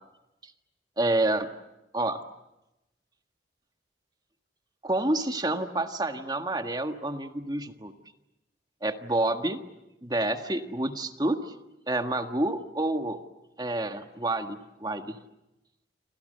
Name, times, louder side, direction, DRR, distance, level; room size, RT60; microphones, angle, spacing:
voice 1, 1.0-1.5 1.9-2.2 4.8-7.9 8.8-9.6 10.0-11.5 11.9-13.2 13.6-15.2, right 2 dB, 20° right, 7 dB, 1.6 m, -28 dB
29.5 x 26.5 x 6.7 m, 0.92 s
head